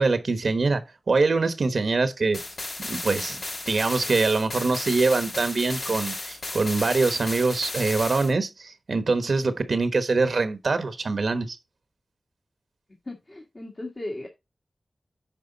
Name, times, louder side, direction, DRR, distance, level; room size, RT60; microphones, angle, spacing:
voice 1, 0.0-2.4 2.9-3.4 3.6-11.6, right 3 dB, 70° right, 1.2 m, -24 dB
sound 1, 2.3-8.3, left 2 dB, 85° left, 5.4 m, -34 dB
voice 2, 13.0-14.3, left 1 dB, 35° left, 1.8 m, -36 dB
9.4 x 5.2 x 4.0 m
wide cardioid pair, 75°, 0 cm